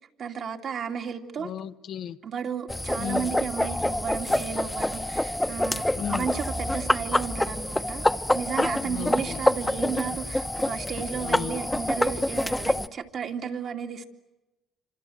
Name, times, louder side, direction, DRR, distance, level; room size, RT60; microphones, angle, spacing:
voice 1, 0.2-1.5 2.2-14.0, right 7 dB, 60° right, 2.6 m, -33 dB
voice 2, 1.4-2.2 3.0-3.3 5.9-6.3 8.8-9.4 11.2-11.6, left 9 dB, 70° left, 1.2 m, -34 dB
sound 1, 2.7-12.9, left 1 dB, 10° left, 1.2 m, -27 dB
27.5 x 26.5 x 7.9 m
supercardioid pair, 65°, 0 cm